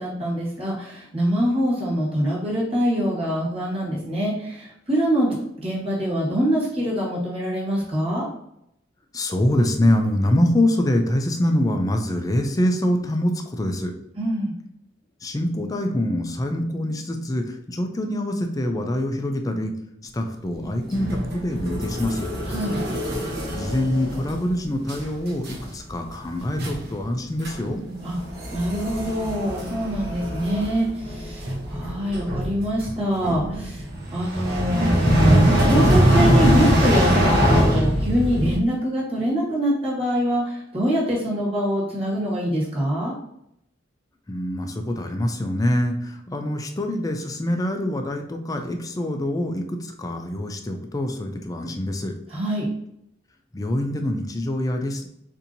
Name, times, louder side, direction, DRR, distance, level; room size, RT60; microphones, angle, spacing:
voice 1, 0.0-8.3 14.1-14.5 22.5-22.8 28.0-28.2 28.5-43.1 52.3-52.7, equal, 35° right, -6 dB, 1.4 m, -24 dB
voice 2, 9.1-13.9 15.2-19.7 20.1-22.3 23.5-27.8 44.3-52.1 53.5-55.1, left 1 dB, 20° left, 4 dB, 0.4 m, -25 dB
sound 1, 20.9-24.5 24.9-25.1 25.4-25.7 26.1-26.2 26.6-26.9 27.4-27.6 27.9-38.6, equal, 55° right, 0.8 m, -22 dB
4.2 x 2.7 x 2.6 m, 0.78 s
head